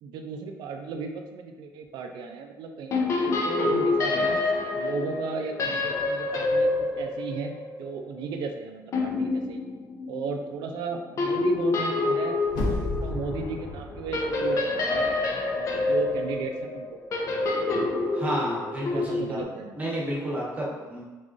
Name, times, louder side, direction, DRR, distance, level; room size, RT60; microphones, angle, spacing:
voice 1, 0.0-4.4 4.7-6.7 7.0-7.5 7.8-9.6 10.1-12.4 12.7-15.1 15.5-17.0 18.9-19.7, right 5 dB, 85° right, 4 dB, 0.5 m, -35 dB
sound 1, 2.9-8.2 8.9-10.5 11.2-19.4, left 3 dB, 45° left, 0.5 m, -27 dB
sound 2, 12.5-15.4 15.7-15.8, left 2 dB, 70° left, 0.8 m, -33 dB
voice 2, 18.1-19.4 19.8-21.0, equal, 20° right, -5 dB, 1.1 m, -31 dB
4.1 x 3.7 x 2.5 m, 1.2 s
cardioid pair, 155°, 7 cm